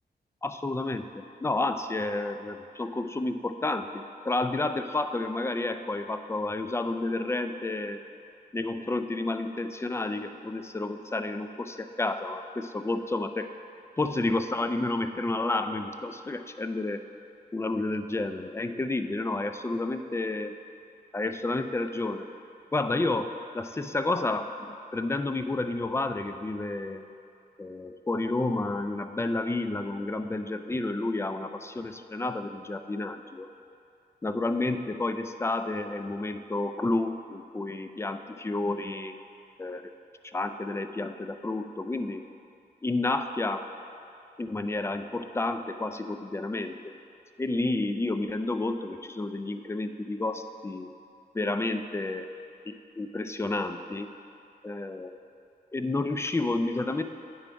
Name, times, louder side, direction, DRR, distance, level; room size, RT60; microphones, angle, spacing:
voice 1, 0.4-8.0 8.5-13.5 14.0-17.0 17.5-20.6 21.1-22.3 22.7-27.0 27.6-33.5 34.2-39.1 39.6-39.8 40.3-42.2 42.8-43.7 44.4-46.9 47.4-50.9 51.3-52.3 52.7-54.1 54.6-55.1 55.7-57.0, left 2 dB, 15° left, 8 dB, 0.3 m, -30 dB
9.3 x 3.4 x 5.0 m, 2.6 s
cardioid pair, 65°, 17 cm